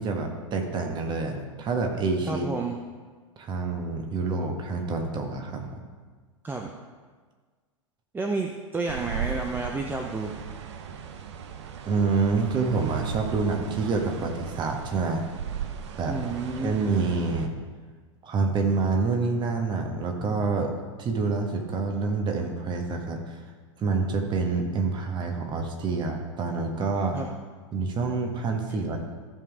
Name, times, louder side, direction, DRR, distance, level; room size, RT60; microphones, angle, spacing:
voice 1, 0.0-2.4 3.4-5.7 11.8-15.2 16.0-16.2 16.6-17.6 18.2-20.7 21.0-23.4 23.8-27.2 27.7-29.0, right 4 dB, 30° right, 3 dB, 1.5 m, -27 dB
voice 2, 2.3-2.7 6.4-6.7 8.1-10.3 16.1-16.7 27.1-27.3, right 3 dB, 10° right, 2 dB, 0.7 m, -30 dB
sound 1, 8.9-17.5, right 8 dB, 60° right, 0.9 m, -37 dB
14.5 x 5.3 x 4.9 m, 1.5 s
figure-of-eight pair, 95°, 16 cm